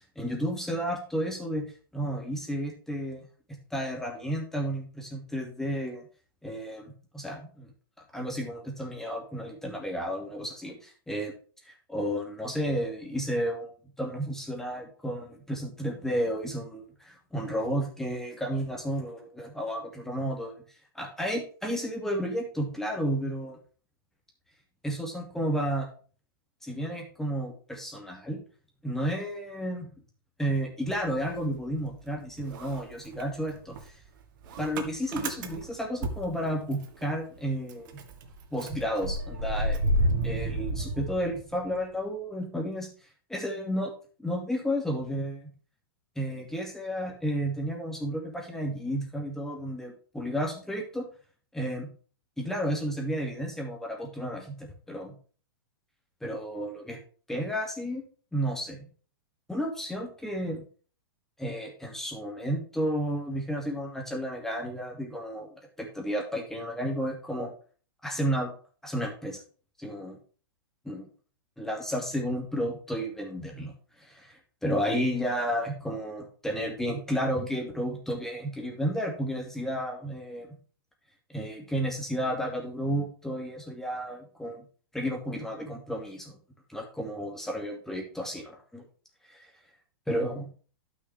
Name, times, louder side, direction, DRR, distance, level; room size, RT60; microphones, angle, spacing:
voice 1, 0.2-1.7 1.9-3.3 3.7-6.1 6.4-7.7 8.1-11.3 11.6-13.7 14.0-20.6 20.9-23.6 24.8-25.9 26.6-28.4 28.8-29.9 30.4-33.8 34.6-38.0 38.5-39.8 40.2-42.9 43.3-43.9 44.2-45.5 46.2-51.1 51.5-51.9 52.4-55.1 56.2-57.0 57.3-58.0 58.3-58.9 59.5-60.6 61.4-65.5 65.8-67.5 68.0-68.5 68.8-69.4 69.8-70.2 70.8-71.1 71.6-73.7 74.0-80.5 81.3-84.6 84.9-86.4 86.7-88.8 89.3-89.5 90.1-90.5, equal, 5° left, 0 dB, 2.5 m, -32 dB
Motor vehicle (road) / Engine starting, 30.9-32.1 32.4-37.0 37.4-37.5 37.7-41.8, right 1 dB, 55° right, 1.7 m, -31 dB
11.5 x 6.2 x 3.6 m, 0.40 s
hypercardioid pair, 130°, 12 cm